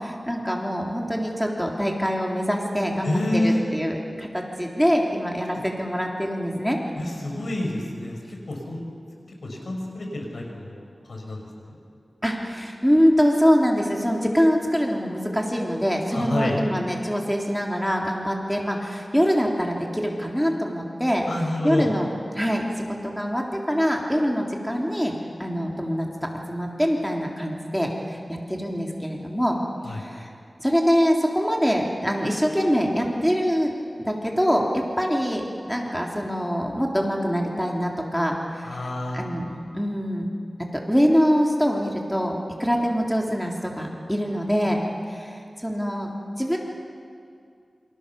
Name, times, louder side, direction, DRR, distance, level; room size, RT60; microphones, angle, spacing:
voice 1, 0.0-6.8 12.2-21.2 21.6-22.1 22.4-25.1 25.4-29.6 30.0-30.3 30.6-33.7 34.0-35.4 35.7-38.8 39.1-40.3 40.9-44.8 45.1-46.1 46.4-46.6, equal, ahead, 0 dB, 3.4 m, -24 dB
voice 2, 3.0-3.6 7.0-8.2 8.5-8.8 9.4-11.8 16.1-16.6 21.3-21.9 29.8-30.0 38.6-39.2, left 1 dB, 80° left, 1 dB, 5.9 m, -28 dB
28.0 x 26.0 x 7.0 m, 2.4 s
wide cardioid pair, 85°, 0 cm